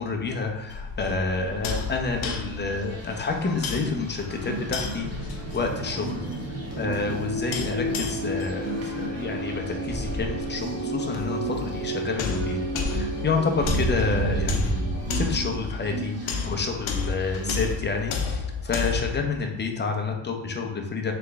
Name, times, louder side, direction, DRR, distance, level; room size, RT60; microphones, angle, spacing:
voice 1, 0.0-5.1 5.5-12.6 12.9-21.1, left 4 dB, 20° left, 3 dB, 0.7 m, -29 dB
sound 1, 0.7-19.2, left 5 dB, 85° left, 0.8 m, -33 dB
sound 2, 1.3-17.8, right 3 dB, 30° right, 1.1 m, -39 dB
sound 3, 4.4-17.8, right 2 dB, 85° right, 1.0 m, -32 dB
3.7 x 3.4 x 3.4 m, 0.84 s
cardioid pair, 85°, 47 cm